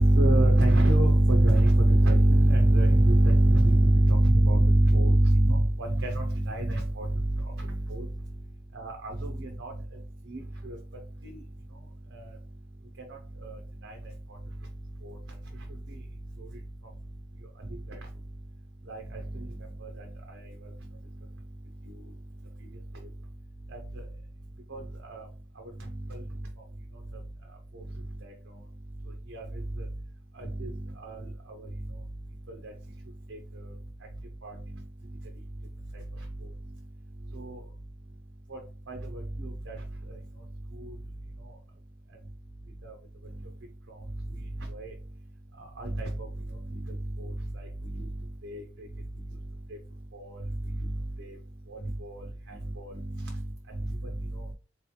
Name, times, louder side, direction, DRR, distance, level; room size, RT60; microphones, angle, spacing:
voice 1, 0.0-8.1 8.7-9.7 10.3-10.8 11.2-11.4 12.1-12.3 13.1-14.0 15.0-15.2 15.9-16.0 16.4-16.5 17.7-18.0 18.9-19.5 19.8-20.7 21.9-22.0 22.9-23.1 23.7-23.8 24.7-25.3 25.8-26.2 27.7-27.8 28.2-28.3 29.3-29.9 30.3-31.7 32.5-32.7 33.3-33.8 34.4-34.6 37.3-37.6 38.5-38.6 38.9-39.8 40.1-40.2 40.8-40.9 42.8-43.0 43.9-44.0 44.7-44.9 45.8-46.3 46.7-48.1 48.4-48.9 49.7-49.8 50.1-51.4 51.7-53.4 53.7-53.9 54.2-54.5, right 1 dB, 70° right, 2 dB, 0.7 m, -25 dB
3.8 x 3.1 x 3.2 m, 0.34 s
head